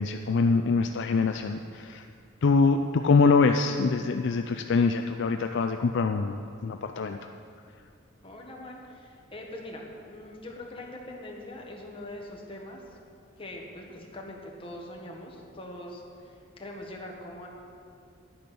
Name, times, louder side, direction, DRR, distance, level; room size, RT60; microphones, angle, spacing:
voice 1, 0.0-2.0 2.4-7.2, left 4 dB, 60° left, 6 dB, 0.4 m, -24 dB
voice 2, 8.2-12.8 13.4-17.5, left 1 dB, 25° left, -1 dB, 1.5 m, -42 dB
11.0 x 8.6 x 6.1 m, 2.5 s
head